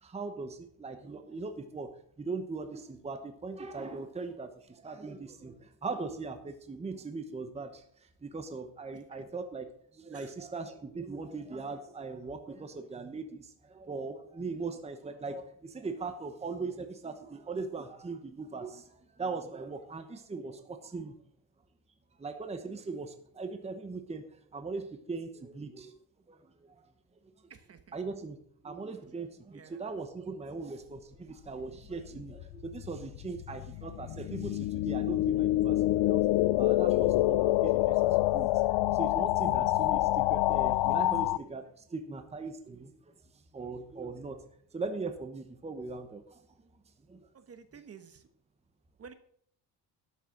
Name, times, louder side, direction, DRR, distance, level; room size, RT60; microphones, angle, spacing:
voice 1, 0.0-21.1 22.2-26.0 26.3-26.8 27.9-36.2 36.6-38.5 38.9-43.0 43.5-44.4 44.7-46.4 47.1-47.3, right 4 dB, 15° right, 7 dB, 1.0 m, -40 dB
voice 2, 27.5-27.8 29.5-29.8 47.3-48.3 49.0-49.1, right 6 dB, 35° right, 10 dB, 1.2 m, -51 dB
sound 1, 32.1-41.4, left 16 dB, 90° left, 0.5 m, -27 dB
12.0 x 6.7 x 6.5 m, 0.64 s
cardioid pair, 135°, 40 cm